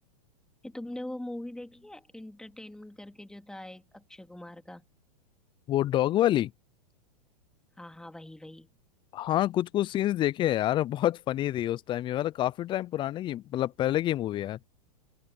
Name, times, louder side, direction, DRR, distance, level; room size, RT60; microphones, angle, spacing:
voice 1, 0.6-4.8 7.8-8.7, left 1 dB, 5° left, 2.6 m, -42 dB
voice 2, 5.7-6.5 9.1-14.6, left 13 dB, 25° left, 0.5 m, -27 dB
open air
hypercardioid pair, 115°, 21 cm